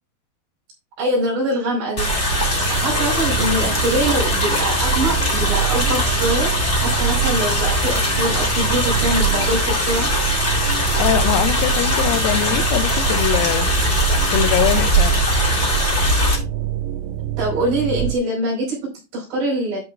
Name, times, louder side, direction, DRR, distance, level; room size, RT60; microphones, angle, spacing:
voice 1, 1.0-2.1 2.5-6.5 6.8-10.1 17.4-19.8, right 1 dB, 50° right, 6.4 m, -23 dB
sound 1, 2.0-16.4, equal, 45° left, 0.8 m, -20 dB
sound 2, 2.3-18.1, right 12 dB, 85° right, 3.2 m, -27 dB
voice 2, 11.0-13.7 14.3-15.3, left 13 dB, 90° left, 3.5 m, -22 dB
12.5 x 6.3 x 2.5 m
omnidirectional pair, 6.0 m